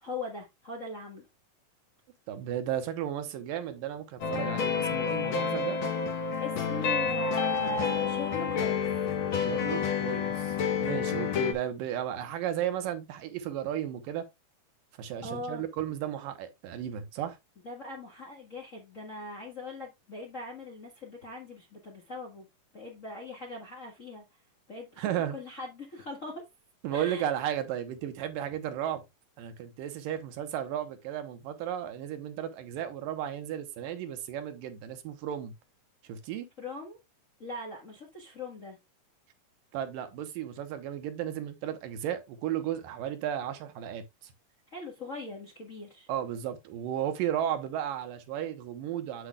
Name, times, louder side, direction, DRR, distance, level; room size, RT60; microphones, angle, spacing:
voice 1, 0.0-1.2 5.2-5.5 6.4-8.9 15.2-15.6 17.6-22.5 22.7-24.2 24.7-25.0 25.3-26.4 26.9-27.3 36.6-37.0 37.4-38.8 44.7-46.1, left 2 dB, 40° left, 1.1 m, -40 dB
voice 2, 2.3-5.8 9.3-14.3 15.0-17.4 25.0-25.4 26.8-29.0 29.4-35.5 36.0-36.5 39.7-44.3 46.1-49.3, right 10 dB, 85° right, 2.7 m, -34 dB
sound 1, 4.2-11.5, left 6 dB, 65° left, 1.2 m, -29 dB
8.0 x 8.0 x 2.3 m
omnidirectional pair, 3.9 m